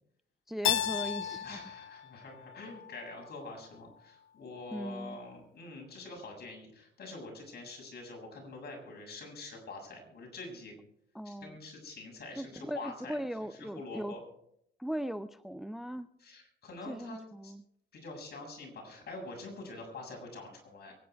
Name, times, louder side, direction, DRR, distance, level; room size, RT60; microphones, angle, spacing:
voice 1, 0.5-1.6 4.7-5.2 11.1-11.6 12.4-14.1 14.8-16.1 16.9-17.6, equal, ahead, 13 dB, 0.5 m, -38 dB
Keyboard (musical), 0.6-3.5, left 11 dB, 75° left, 1.0 m, -34 dB
voice 2, 1.4-10.7 11.2-13.2 13.5-14.2 16.2-17.5 17.9-20.9, left 3 dB, 55° left, 1 dB, 7.1 m, -45 dB
23.5 x 10.0 x 4.7 m, 0.74 s
cardioid pair, 90°, 20 cm